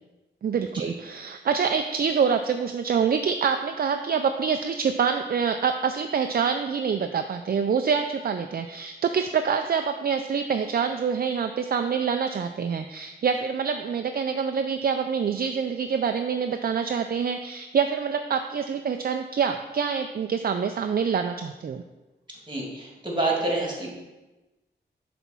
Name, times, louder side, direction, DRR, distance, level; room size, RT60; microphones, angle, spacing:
voice 1, 0.4-21.8, right 6 dB, 55° right, 7 dB, 0.4 m, -26 dB
voice 2, 22.5-23.9, right 2 dB, 25° right, -2 dB, 2.4 m, -28 dB
6.9 x 4.2 x 6.0 m, 1.1 s
wide cardioid pair, 80°, 19 cm